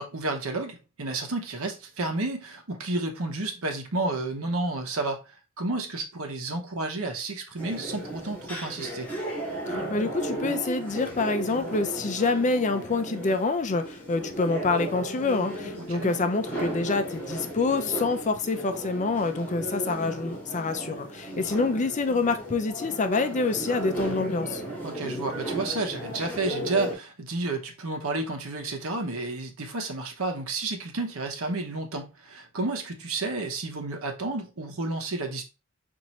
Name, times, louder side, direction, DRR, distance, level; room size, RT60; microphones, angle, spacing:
voice 1, 0.0-5.2 5.6-9.1 15.7-16.1 24.8-35.4, right 2 dB, 80° right, 0.9 m, -31 dB
sound 1, 7.6-26.9, right 1 dB, 10° left, 1.5 m, -35 dB
voice 2, 9.7-24.6, left 3 dB, 35° left, 0.5 m, -27 dB
5.4 x 2.6 x 3.0 m
head